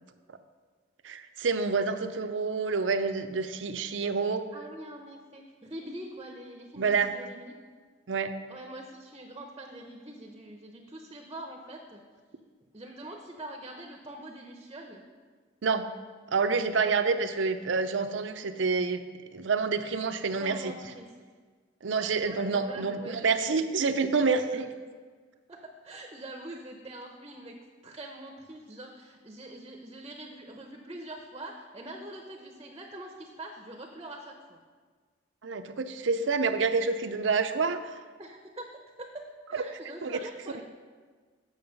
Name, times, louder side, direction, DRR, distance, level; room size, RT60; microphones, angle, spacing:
voice 1, 1.0-4.4 6.8-7.1 8.1-8.3 15.6-15.9 16.3-19.0 19.3-20.7 21.8-24.7 35.4-38.0 39.5-39.6 40.0-40.2 40.5-40.6, right 4 dB, 75° right, 9 dB, 0.6 m, -28 dB
voice 2, 4.5-7.6 8.5-12.0 12.7-15.0 20.2-21.1 21.9-23.2 23.4-23.6 24.5-24.6 25.5-27.6 27.8-34.6 38.2-38.7 39.0-40.6, right 1 dB, 25° right, 2 dB, 0.7 m, -44 dB
8.7 x 6.4 x 5.3 m, 1.5 s
head